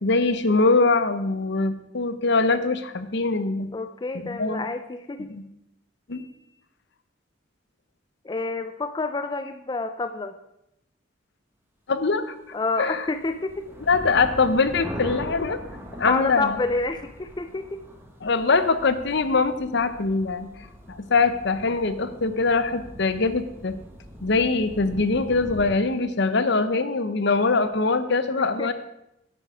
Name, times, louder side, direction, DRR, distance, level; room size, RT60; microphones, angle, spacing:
voice 1, 0.0-3.7 4.1-4.6 5.3-5.4 6.1-6.2 11.9-12.3 12.8-13.0 13.9-15.6 16.0-16.6 18.2-20.5 20.9-23.8 24.2-28.7, left 3 dB, 60° left, 12 dB, 0.8 m, -23 dB
voice 2, 3.7-5.3 8.2-10.3 12.5-13.7 16.0-17.8 28.6-28.7, left 3 dB, 20° left, 9 dB, 0.4 m, -28 dB
sound 1, 12.9-25.7, equal, 10° right, 1.4 m, -41 dB
11.0 x 8.9 x 4.9 m, 0.85 s
head